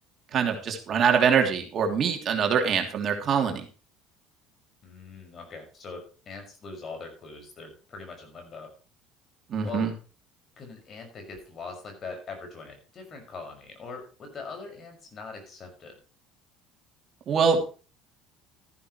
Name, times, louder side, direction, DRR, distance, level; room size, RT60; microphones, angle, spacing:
voice 1, 0.3-3.6 9.5-9.9 17.3-17.6, right 6 dB, 45° right, 3 dB, 3.0 m, -24 dB
voice 2, 4.8-8.7 9.6-9.9 10.6-15.9, left 4 dB, 40° left, 4 dB, 5.9 m, -42 dB
13.5 x 12.0 x 3.2 m, 0.35 s
supercardioid pair, 90°, 0 cm